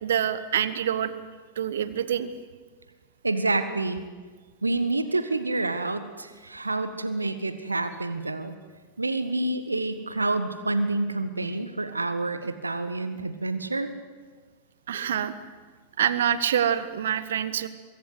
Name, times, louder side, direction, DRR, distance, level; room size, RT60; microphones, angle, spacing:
voice 1, 0.0-1.1 1.6-2.3 14.9-15.3 16.0-17.7, right 9 dB, 60° right, 14 dB, 1.2 m, -26 dB
voice 2, 3.2-4.0 4.6-8.6 9.0-13.9, right 2 dB, 80° right, 11 dB, 1.4 m, -28 dB
24.0 x 22.5 x 8.1 m, 1.5 s
figure-of-eight pair, 90°, 0 cm